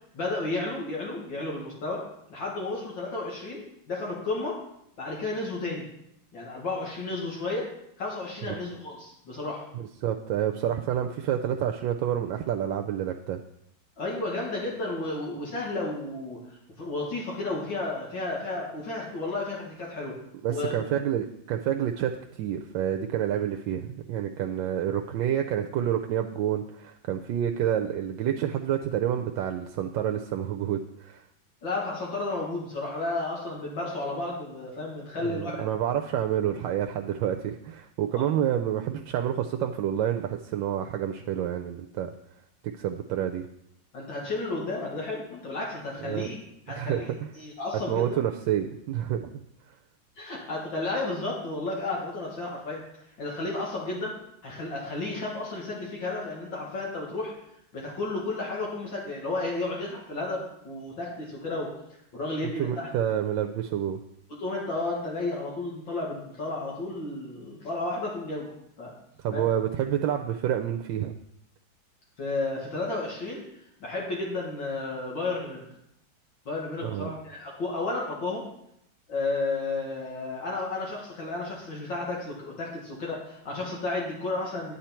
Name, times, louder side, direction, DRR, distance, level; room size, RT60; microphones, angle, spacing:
voice 1, 0.1-4.6 5.0-5.8 6.3-7.7 8.0-9.6 14.0-20.2 20.5-20.9 31.6-35.7 38.2-38.3 43.9-46.4 46.7-48.2 50.2-52.8 53.2-54.1 54.4-57.3 57.7-61.7 62.1-62.9 64.4-68.5 68.8-68.9 69.3-69.4 72.2-73.4 73.8-75.6 76.5-78.5 79.1-84.7, left 2 dB, 70° left, -4 dB, 2.7 m, -32 dB
voice 2, 9.7-13.4 20.4-31.2 35.2-42.1 42.6-43.5 46.0-46.3 46.7-47.3 47.7-49.3 62.6-64.0 69.2-71.1 76.8-77.1, right 10 dB, 80° right, 5 dB, 1.3 m, -28 dB
9.9 x 9.1 x 4.4 m, 0.77 s
omnidirectional pair, 2.1 m